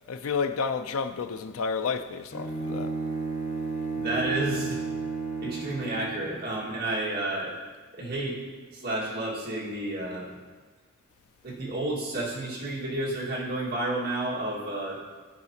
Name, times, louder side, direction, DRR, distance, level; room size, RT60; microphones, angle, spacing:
voice 1, 0.1-3.0, left 5 dB, 80° left, 0.4 m, -30 dB
Bowed string instrument, 2.3-6.4, right 4 dB, 45° left, 1.3 m, -32 dB
voice 2, 3.9-4.8 5.4-7.5 7.9-8.4 8.7-10.3 11.4-15.0, right 2 dB, 45° right, 1.8 m, -31 dB
12.0 x 4.9 x 2.8 m
head